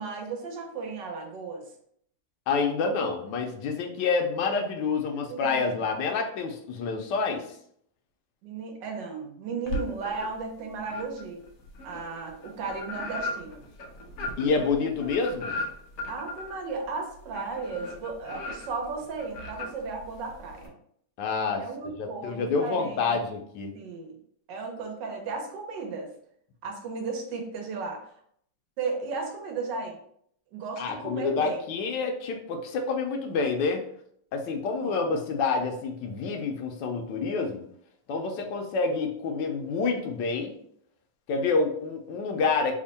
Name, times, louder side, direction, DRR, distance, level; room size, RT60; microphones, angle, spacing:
voice 1, 0.0-1.7 5.3-5.8 8.4-11.4 11.8-13.6 16.1-20.7 21.6-23.2 23.7-24.2 24.5-26.1 26.6-28.1 28.8-30.0 30.5-31.7 34.8-35.1, right 4 dB, 85° right, 2 dB, 1.4 m, -35 dB
voice 2, 2.5-7.4 14.4-15.5 21.2-21.6 22.0-23.7 30.8-33.8 34.3-37.6 38.1-40.6 41.3-42.8, left 4 dB, 85° left, 3 dB, 1.3 m, -28 dB
sound 1, 9.7-10.5 10.8-20.7, left 1 dB, 65° left, 1.1 m, -37 dB
3.6 x 2.1 x 3.9 m, 0.67 s
omnidirectional pair, 1.9 m